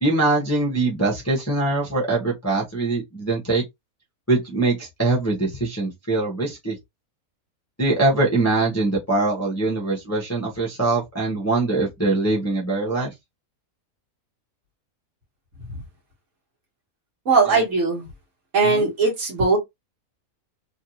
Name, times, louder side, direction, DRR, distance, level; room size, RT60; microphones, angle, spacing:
voice 1, 0.0-3.6 4.3-6.8 7.8-13.1 17.5-17.6 18.6-18.9, right 2 dB, 15° left, 0.6 m, -23 dB
voice 2, 17.2-18.0 18.5-19.6, right 4 dB, 55° right, 1.6 m, -19 dB
3.1 x 2.6 x 2.7 m
omnidirectional pair, 1.6 m